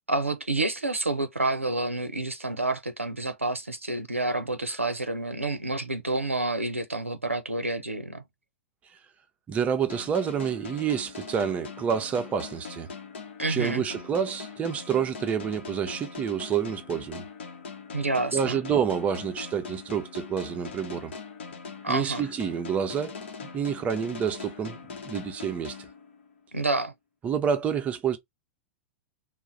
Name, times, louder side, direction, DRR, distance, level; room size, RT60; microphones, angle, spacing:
voice 1, 0.1-8.2 13.4-13.8 17.9-18.6 21.8-22.2 26.5-26.9, right 2 dB, 90° right, 0.4 m, -29 dB
voice 2, 9.5-12.9 13.5-17.2 18.3-21.1 21.9-23.2 23.5-24.8 25.0-25.8 27.2-28.2, right 7 dB, 20° right, 0.5 m, -28 dB
sound 1, 9.9-26.5, left 5 dB, 60° left, 0.7 m, -41 dB
2.3 x 2.0 x 3.8 m
figure-of-eight pair, 100°, 7 cm